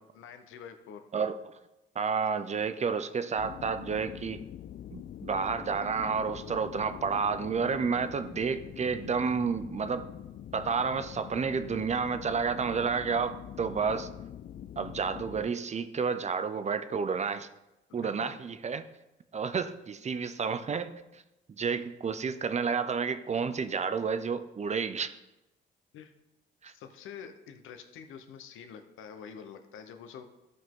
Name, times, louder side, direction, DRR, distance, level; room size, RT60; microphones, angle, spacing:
voice 1, 0.1-1.1 17.9-18.3 25.9-26.1 26.7-30.3, left 7 dB, 85° left, 7 dB, 0.9 m, -47 dB
voice 2, 2.0-4.4 4.9-10.1 10.5-14.1 14.8-17.5 17.9-18.8 19.3-21.0 21.6-25.1 26.6-26.7, right 5 dB, 35° right, 11 dB, 0.6 m, -30 dB
sound 1, 3.4-15.5, left 10 dB, 50° left, 0.4 m, -44 dB
13.0 x 5.4 x 3.8 m, 0.98 s
cardioid pair, 90°, 20 cm